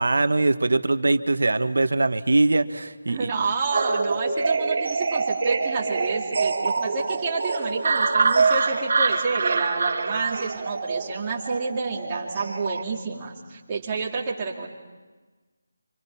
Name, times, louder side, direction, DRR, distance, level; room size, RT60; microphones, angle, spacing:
voice 1, 0.0-3.3, right 2 dB, 80° right, 10 dB, 1.4 m, -22 dB
voice 2, 3.1-14.7, right 4 dB, 15° right, -3 dB, 2.6 m, -29 dB
sound 1, 3.7-12.8, right 4 dB, 50° right, 2.6 m, -25 dB
29.0 x 26.5 x 5.7 m, 1.3 s
figure-of-eight pair, 175°, 0 cm